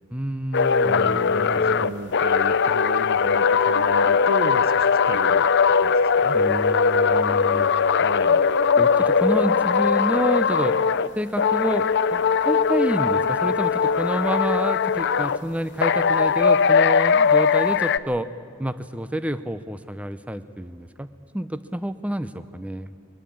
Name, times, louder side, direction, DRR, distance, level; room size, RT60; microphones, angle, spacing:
voice 1, 0.1-2.0 6.3-7.7 8.8-10.8 11.2-18.3 18.6-21.1 21.3-22.9, equal, 5° right, 12 dB, 0.7 m, -28 dB
sound 1, 0.5-11.1 11.4-15.4 15.8-18.0, left 5 dB, 55° left, 0.6 m, -20 dB
voice 2, 0.8-6.4 8.0-8.7, right 2 dB, 50° right, 14 dB, 0.7 m, -35 dB
23.5 x 19.5 x 8.7 m, 2.1 s
head